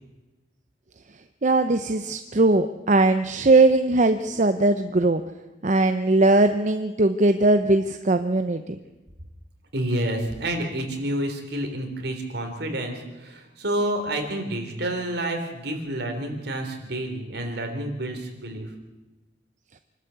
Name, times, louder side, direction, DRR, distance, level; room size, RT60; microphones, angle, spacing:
voice 1, 1.4-5.2 5.6-8.8, right 2 dB, 40° right, 9 dB, 0.7 m, -20 dB
voice 2, 9.7-18.7, right 1 dB, 60° right, 4 dB, 3.6 m, -29 dB
26.0 x 12.5 x 8.2 m, 1.1 s
head